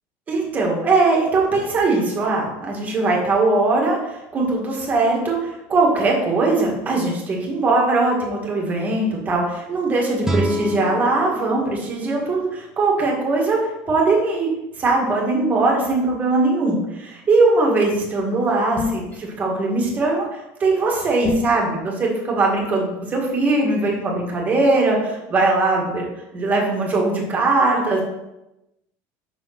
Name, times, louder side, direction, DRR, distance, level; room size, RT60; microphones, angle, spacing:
voice 1, 0.3-13.6 13.9-14.5 14.8-26.1 26.3-28.0, right 3 dB, 25° right, -2 dB, 2.0 m, -20 dB
sound 1, 10.2-13.3, right 1 dB, 5° right, 1.0 m, -28 dB
sound 2, 18.8-19.2 21.2-21.6, left 4 dB, 25° left, 1.9 m, -24 dB
5.9 x 4.9 x 5.9 m, 0.93 s
cardioid pair, 150°, 7 cm